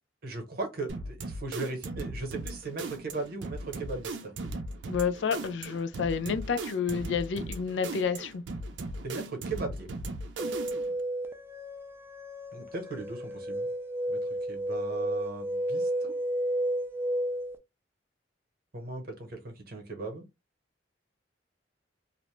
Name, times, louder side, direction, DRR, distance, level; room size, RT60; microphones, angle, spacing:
voice 1, 0.2-4.3 9.0-9.9 12.5-13.7 14.1-14.2 14.5-16.1 18.7-20.2, right 3 dB, 55° right, 0.8 m, -38 dB
sound 1, 0.9-11.0, right 2 dB, 85° right, 0.5 m, -38 dB
voice 2, 4.9-8.4, left 6 dB, 80° left, 0.4 m, -30 dB
sound 2, 10.4-17.6, right 1 dB, 15° right, 0.3 m, -32 dB
2.5 x 2.1 x 3.0 m
head